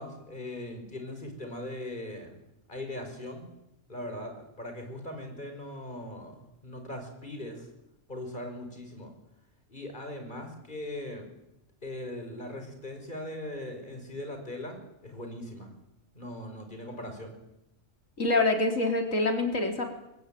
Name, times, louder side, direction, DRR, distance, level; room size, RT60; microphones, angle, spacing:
voice 1, 0.0-2.4 2.7-3.5 3.9-7.7 8.1-9.1 9.7-11.3 11.8-14.8 15.0-15.7 16.1-17.4, left 1 dB, 35° left, 5 dB, 5.7 m, -40 dB
voice 2, 18.2-19.9, left 2 dB, 80° left, 4 dB, 4.1 m, -25 dB
23.0 x 20.0 x 9.2 m, 0.89 s
omnidirectional pair, 1.4 m